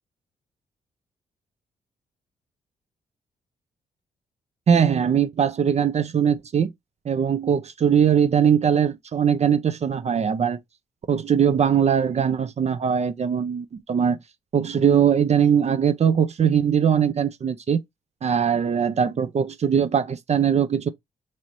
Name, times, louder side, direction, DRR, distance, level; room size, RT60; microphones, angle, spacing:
voice 1, 4.7-6.7 7.1-10.6 11.1-14.2 14.5-17.8 18.2-20.9, right 8 dB, 40° right, 0.5 m, -21 dB
3.1 x 2.8 x 2.5 m
hypercardioid pair, 45°, 17 cm